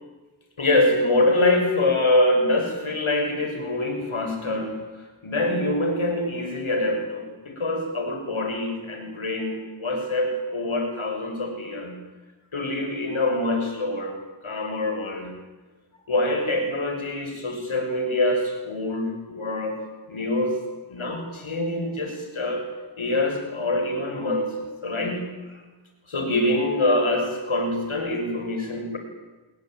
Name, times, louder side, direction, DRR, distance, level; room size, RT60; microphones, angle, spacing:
voice 1, 0.6-4.8 5.2-12.0 12.5-15.3 16.1-19.8 20.1-20.6 20.9-22.7 23.0-24.5 24.8-25.6 26.1-29.0, left 2 dB, 90° left, 4 dB, 6.6 m, -25 dB
29.0 x 21.5 x 9.2 m, 1.2 s
wide cardioid pair, 60°, 47 cm